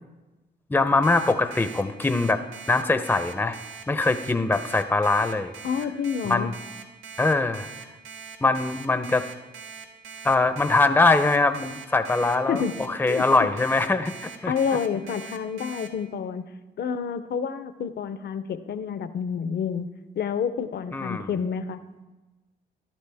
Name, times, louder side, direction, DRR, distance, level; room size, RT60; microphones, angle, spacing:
voice 1, 0.7-2.4 2.7-3.6 3.9-5.5 6.3-6.5 7.2-7.7 8.4-9.3 10.2-12.6 12.9-14.5 20.9-21.3, left 3 dB, 10° left, 9 dB, 0.6 m, -22 dB
Alarm, 1.0-15.9, right 6 dB, 85° right, 1.3 m, -41 dB
voice 2, 5.6-6.5 12.2-13.5 14.5-16.4 16.8-19.9 20.2-21.8, left 7 dB, 55° left, 11 dB, 0.7 m, -29 dB
15.0 x 11.5 x 3.5 m, 1.2 s
cardioid pair, 90°, 20 cm